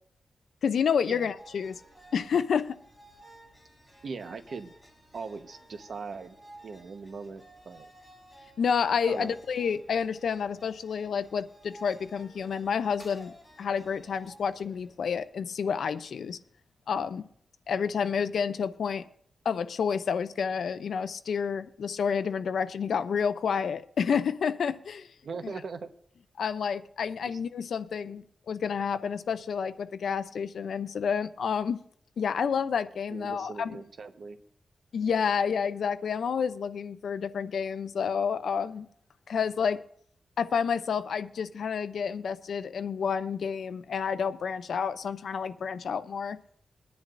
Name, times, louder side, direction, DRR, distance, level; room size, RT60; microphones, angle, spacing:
voice 1, 0.6-1.8 2.1-2.8 8.6-16.4 16.9-17.2 17.7-19.0 19.4-25.1 26.4-31.8 32.2-33.8 34.9-38.9 39.3-39.8 40.4-46.4, left 6 dB, 85° left, 0.5 m, -29 dB
sound 1, 1.4-15.4, right 1 dB, ahead, 2.3 m, -54 dB
voice 2, 4.0-4.7 5.1-6.4 6.6-7.9 9.0-9.4 25.2-25.9 27.3-27.4 28.0-28.1 33.1-34.4, right 4 dB, 70° right, 1.1 m, -40 dB
21.5 x 10.5 x 2.6 m
wide cardioid pair, 105°, 0 cm